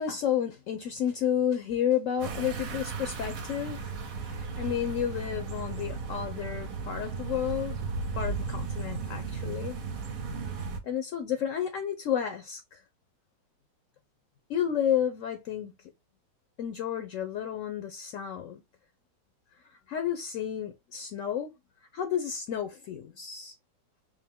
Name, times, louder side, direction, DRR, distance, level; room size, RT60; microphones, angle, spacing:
voice 1, 0.0-4.0 4.3-7.8 8.1-9.8 10.8-12.8 14.5-15.9 16.6-18.6 19.9-21.5 21.9-23.5, left 9 dB, 65° left, 0.8 m, -31 dB
sound 1, 2.2-10.8, right 4 dB, 60° right, 1.1 m, -35 dB
3.7 x 2.7 x 3.5 m
omnidirectional pair, 1.9 m